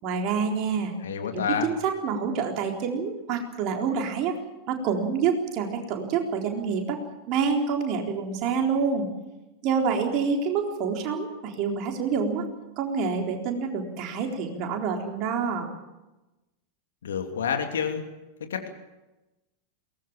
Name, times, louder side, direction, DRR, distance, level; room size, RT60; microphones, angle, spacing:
voice 1, 0.0-0.9 1.3-4.4 4.7-7.0 7.3-9.1 9.6-12.5 12.8-15.7, right 5 dB, 40° right, 2 dB, 4.0 m, -27 dB
voice 2, 1.0-1.7 17.0-18.0 18.4-18.7, left 7 dB, 65° left, 5 dB, 2.9 m, -28 dB
23.0 x 19.5 x 7.3 m, 1.0 s
figure-of-eight pair, 90°, 0 cm